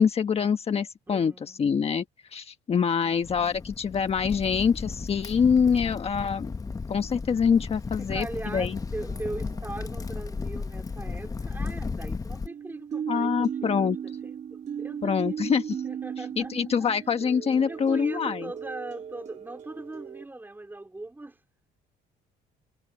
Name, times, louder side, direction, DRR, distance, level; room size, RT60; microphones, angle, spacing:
voice 1, 0.0-1.3 1.6-2.0 2.3-6.5 6.9-8.3 8.5-8.8 13.1-14.0 15.0-15.8 16.4-18.5, left 6 dB, 35° left, 1.3 m, -25 dB
voice 2, 1.1-1.6 3.0-3.3 8.0-16.9 17.6-21.4, right 2 dB, 10° right, 4.5 m, -40 dB
Crackle, 3.2-12.5, left 4 dB, 20° left, 0.9 m, -35 dB
sound 1, 9.1-9.9 12.5-20.2, right 8 dB, 45° right, 3.2 m, -36 dB
cardioid pair, 110°, 17 cm